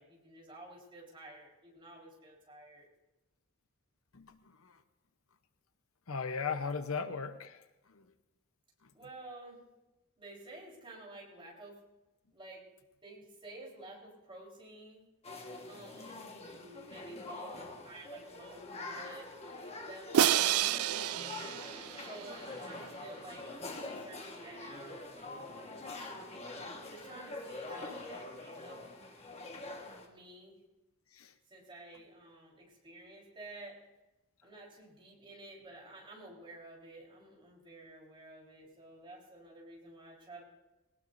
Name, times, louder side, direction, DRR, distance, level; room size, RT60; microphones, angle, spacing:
voice 1, 0.0-2.9 8.9-9.6 10.2-11.8 12.3-12.6 13.0-15.0 15.7-19.3 19.8-21.6 22.0-26.0 26.9-28.9 30.0-30.6 31.5-33.8 34.4-40.4, right 2 dB, 25° right, -3 dB, 4.0 m, -51 dB
voice 2, 4.1-4.7 6.1-7.6 7.9-8.0 31.1-31.3, left 5 dB, 70° left, 9 dB, 0.8 m, -37 dB
sound 1, 15.2-30.1, left 2 dB, 30° left, 1.4 m, -45 dB
Crash cymbal, 20.1-22.4, right 11 dB, 80° right, 0.4 m, -29 dB
20.5 x 18.5 x 2.6 m, 1.0 s
head